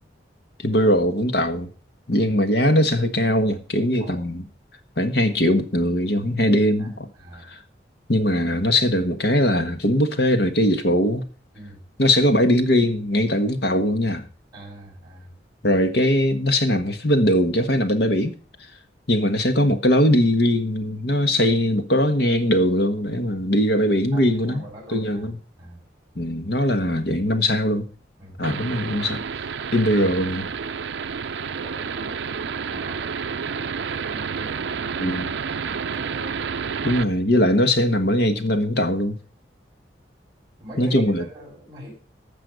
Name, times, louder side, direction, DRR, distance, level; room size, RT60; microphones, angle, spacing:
voice 1, 0.6-1.7 2.1-4.5 5.0-7.1 7.4-7.6 8.1-11.2 12.0-14.3 15.6-18.3 19.1-24.6 24.9-25.4 26.1-27.9 28.4-29.2 29.7-30.5 35.0-35.3 36.8-39.2 40.8-41.2, left 1 dB, 60° left, 1.4 m, -20 dB
voice 2, 14.5-15.3 24.1-25.3 25.6-25.8 28.2-28.4 31.4-36.3 40.6-41.9, right 1 dB, 20° right, 6.3 m, -42 dB
sound 1, 28.4-37.0, right 6 dB, 75° right, 0.6 m, -30 dB
14.5 x 5.5 x 6.5 m
head